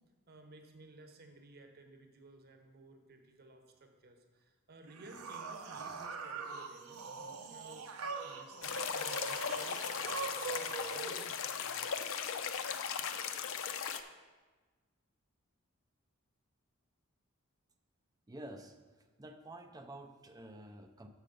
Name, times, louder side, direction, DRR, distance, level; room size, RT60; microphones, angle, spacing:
voice 1, 0.3-7.9 8.2-12.2, right 2 dB, 45° right, 5 dB, 0.9 m, -56 dB
sound 1, 4.9-11.2, right 4 dB, 85° right, 0.8 m, -42 dB
sound 2, 8.6-14.0, left 7 dB, 65° left, 0.5 m, -37 dB
voice 2, 18.3-18.8 19.2-21.1, right 1 dB, 20° right, 6 dB, 0.5 m, -49 dB
7.6 x 6.4 x 5.2 m, 1.3 s
head